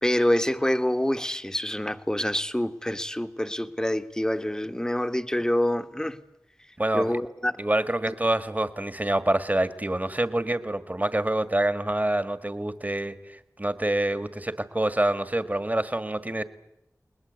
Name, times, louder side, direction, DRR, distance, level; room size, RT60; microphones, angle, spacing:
voice 1, 0.0-6.2 6.9-7.6 8.1-8.2, left 1 dB, 10° left, 1.5 m, -26 dB
voice 2, 6.8-7.1 7.6-16.4, right 1 dB, 25° right, 1.8 m, -26 dB
30.0 x 20.5 x 8.2 m
wide cardioid pair, 45°, 6 cm